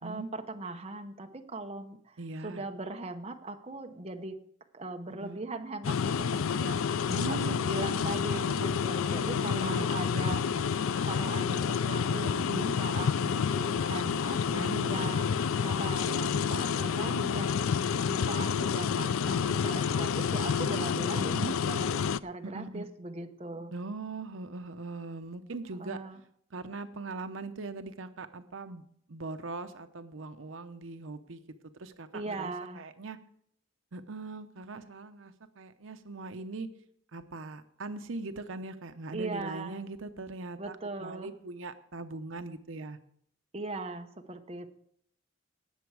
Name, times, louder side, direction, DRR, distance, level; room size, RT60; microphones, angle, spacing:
voice 1, 0.0-4.4 4.7-14.4 14.9-15.3 15.6-17.7 18.1-23.7 25.8-26.2 32.1-32.8 39.1-39.8 40.6-41.3 43.5-44.7, right 2 dB, 30° right, 5 dB, 1.0 m, -39 dB
voice 2, 2.2-2.6 5.2-5.4 7.1-7.6 8.0-8.3 9.4-9.9 10.3-10.4 12.4-12.7 14.5-15.1 17.1-17.4 21.2-21.5 22.4-22.9 23.7-26.0 26.5-31.4 31.8-33.2 33.9-36.7 37.1-43.0, right 3 dB, 75° right, 9 dB, 0.8 m, -40 dB
sound 1, 5.8-22.2, left 6 dB, 85° left, 0.4 m, -29 dB
18.5 x 7.0 x 4.8 m, 0.66 s
head